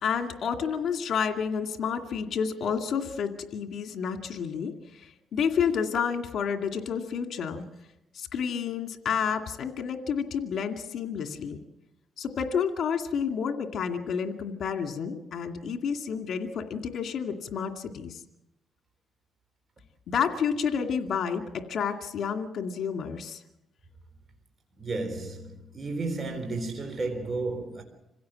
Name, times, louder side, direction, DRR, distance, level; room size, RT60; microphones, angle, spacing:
voice 1, 0.0-7.6 8.1-11.6 12.2-18.2 20.1-23.4, left 7 dB, 60° left, 2.3 m, -30 dB
voice 2, 24.8-27.8, right 3 dB, 35° right, 3.8 m, -32 dB
27.0 x 16.5 x 7.7 m
cardioid pair, 90°, 0 cm